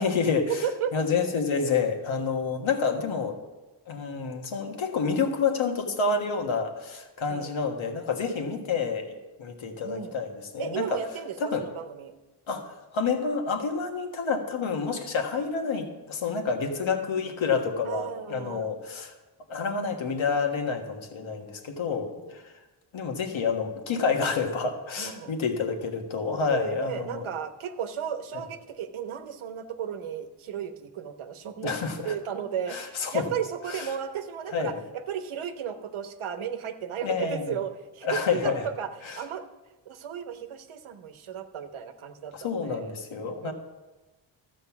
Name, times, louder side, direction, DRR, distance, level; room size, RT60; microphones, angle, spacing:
voice 1, 0.0-0.6 0.9-3.4 3.9-11.0 11.4-11.6 12.5-19.1 19.5-22.6 22.9-27.3 31.6-32.1 32.7-33.2 33.7-33.9 34.5-34.8 37.0-37.6 38.0-38.7 39.0-39.2 42.3-43.5, left 5 dB, 75° left, 4 dB, 1.6 m, -28 dB
voice 2, 0.6-0.9 7.3-7.6 9.8-10.2 10.6-12.1 17.8-18.7 21.9-22.3 25.0-25.3 26.5-31.7 32.0-34.7 35.1-39.4 39.8-42.9 43.4-43.5, right 8 dB, 85° right, 8 dB, 1.1 m, -34 dB
13.0 x 8.0 x 5.9 m, 1.1 s
cardioid pair, 75°, 48 cm